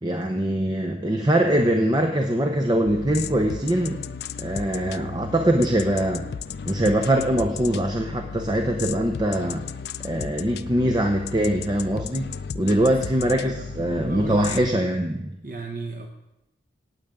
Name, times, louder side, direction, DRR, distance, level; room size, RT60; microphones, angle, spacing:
voice 1, 0.0-4.0 4.4-6.2 6.6-9.6 10.0-15.2, right 1 dB, 25° right, 4 dB, 0.7 m, -23 dB
sound 1, 2.8-14.7, left 6 dB, 60° left, 0.3 m, -35 dB
voice 2, 12.6-13.0 13.4-13.7 14.0-14.9 15.4-16.1, right 4 dB, 50° right, 3 dB, 0.8 m, -35 dB
17.5 x 8.1 x 3.7 m, 0.93 s
head